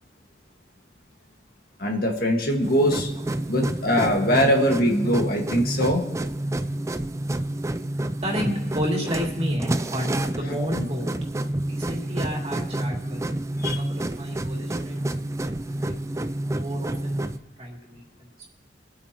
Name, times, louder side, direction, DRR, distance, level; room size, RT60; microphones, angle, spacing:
voice 1, 1.8-3.1 3.5-6.0 13.6-13.8, equal, 55° left, 1 dB, 1.8 m, -22 dB
sound 1, 2.5-17.4, right 1 dB, 15° right, 0.4 m, -29 dB
voice 2, 8.2-11.2 11.6-13.2 13.8-15.0 15.6-16.0 16.5-18.5, equal, 35° right, -2 dB, 2.7 m, -32 dB
23.5 x 8.6 x 3.0 m, 1.2 s
head